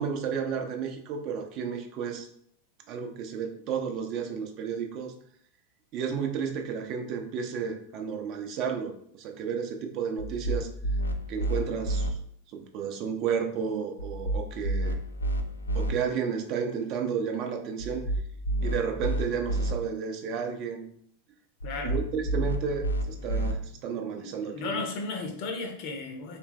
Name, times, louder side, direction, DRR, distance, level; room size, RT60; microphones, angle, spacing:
voice 1, 0.0-2.3 2.9-5.1 5.9-10.7 11.3-12.1 12.5-15.0 15.7-18.0 18.6-20.9 21.8-24.8, right 6 dB, 40° right, 3 dB, 0.6 m, -32 dB
sound 1, 10.2-12.1 14.0-15.9 17.8-19.7 21.6-23.5, right 1 dB, 75° left, 0.4 m, -30 dB
voice 2, 21.6-22.0 24.2-26.4, left 3 dB, 45° left, 4 dB, 0.8 m, -35 dB
3.3 x 3.2 x 3.1 m, 0.66 s
figure-of-eight pair, 90°, 0 cm